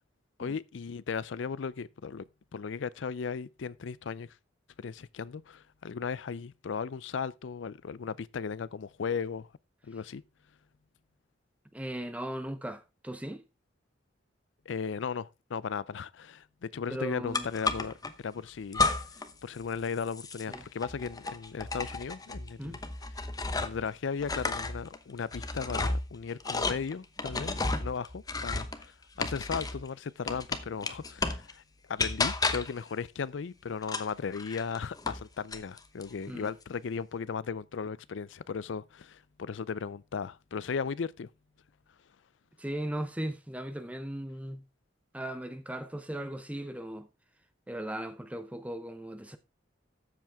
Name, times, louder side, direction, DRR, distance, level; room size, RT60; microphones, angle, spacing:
voice 1, 0.4-2.2 2.5-4.3 4.8-9.5 9.8-10.2 14.7-18.9 19.4-22.8 23.6-31.6 31.9-41.3, left 5 dB, 75° left, 0.5 m, -36 dB
voice 2, 11.7-13.4 16.9-17.5 20.5-20.6 22.6-22.8 36.3-36.5 42.6-44.6 45.1-47.1 47.7-49.4, right 1 dB, 5° right, 0.7 m, -37 dB
sound 1, 17.3-18.1 18.7-19.3 19.6-23.9 24.2-29.9 30.3-31.5 32.0-32.8 33.8-35.2 35.5-36.1, left 3 dB, 20° left, 0.9 m, -32 dB
13.0 x 7.6 x 3.5 m
head